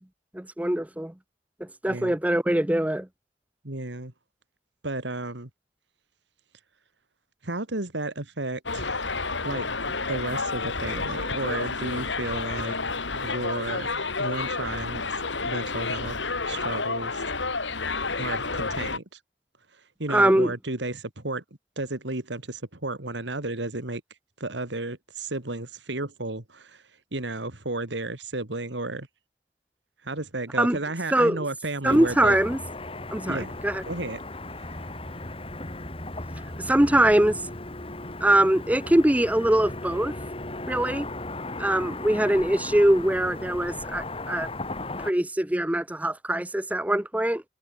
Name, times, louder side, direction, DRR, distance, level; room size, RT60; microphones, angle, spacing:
voice 1, 0.3-1.1 1.8-3.1 20.1-20.5 30.6-30.8 31.1-31.4 31.8-32.6 33.1-33.8 36.6-37.5 38.2-40.1 40.7-41.1 41.6-44.5 45.0-47.4, right 1 dB, 10° right, 0.7 m, -22 dB
voice 2, 3.6-4.1 4.8-5.5 7.4-9.1 9.4-12.8 13.2-15.0 15.4-16.2 16.5-17.2 18.2-19.0 20.0-21.4 21.8-24.0 24.4-26.8 27.1-29.1 30.0-32.4 33.3-33.6 33.9-34.2, right 2 dB, 75° right, 2.6 m, -33 dB
Subway metro underground, 8.7-19.0, left 3 dB, 85° left, 4.9 m, -30 dB
Car passing by / Traffic noise roadway noise, 31.8-45.1, left 2 dB, 30° left, 3.0 m, -36 dB
head